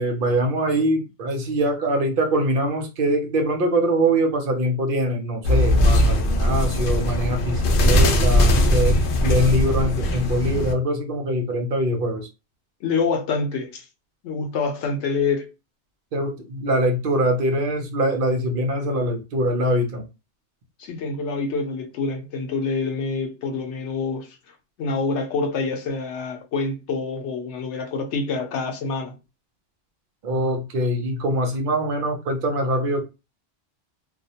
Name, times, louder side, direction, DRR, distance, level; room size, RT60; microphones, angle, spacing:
voice 1, 0.0-9.0 9.2-12.3 16.1-20.0 30.2-33.0, right 1 dB, 55° right, 0.8 m, -23 dB
sound 1, 5.4-10.7, left 1 dB, 60° left, 0.6 m, -19 dB
voice 2, 12.8-13.8 14.2-15.5 20.8-24.4 24.8-29.2, left 4 dB, 85° left, 0.9 m, -26 dB
2.4 x 2.1 x 2.7 m
omnidirectional pair, 1.1 m